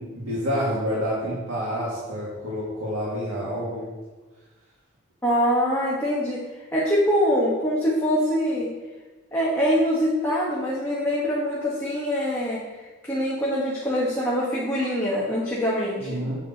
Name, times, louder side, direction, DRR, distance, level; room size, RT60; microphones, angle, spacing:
voice 1, 0.0-3.9 16.0-16.4, equal, 85° right, -7 dB, 2.1 m, -28 dB
voice 2, 5.2-6.4 6.7-8.7 9.3-16.3, equal, 10° left, -6 dB, 1.3 m, -24 dB
8.3 x 8.2 x 3.0 m, 1.2 s
head